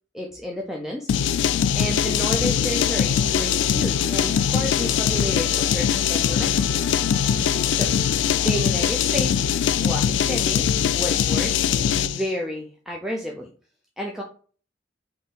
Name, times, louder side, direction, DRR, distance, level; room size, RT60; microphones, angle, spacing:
voice 1, 0.1-1.3 1.7-6.8 7.7-7.9 8.4-9.4 9.8-10.7 10.9-11.6 12.0-13.5 14.0-14.2, equal, ahead, -1 dB, 0.5 m, -31 dB
sound 1, 1.1-12.2, left 8 dB, 85° left, 0.3 m, -22 dB
Musical instrument, 1.8-9.6, left 1 dB, 20° left, 1.1 m, -42 dB
4.2 x 2.6 x 3.6 m, 0.41 s
head